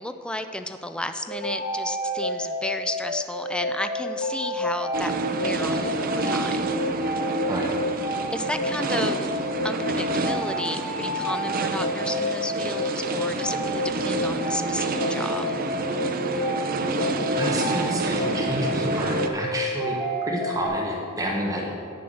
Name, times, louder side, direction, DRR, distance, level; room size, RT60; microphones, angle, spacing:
voice 1, 0.0-6.7 8.3-9.2 9.6-15.6, left 1 dB, 5° left, 8 dB, 0.3 m, -33 dB
sound 1, 1.3-20.7, left 1 dB, 30° left, 2.3 m, -30 dB
sound 2, 4.9-19.3, right 2 dB, 40° right, 0.6 m, -28 dB
voice 2, 17.3-21.6, right 1 dB, 15° right, -2 dB, 1.0 m, -29 dB
9.3 x 6.9 x 6.4 m, 2.5 s
head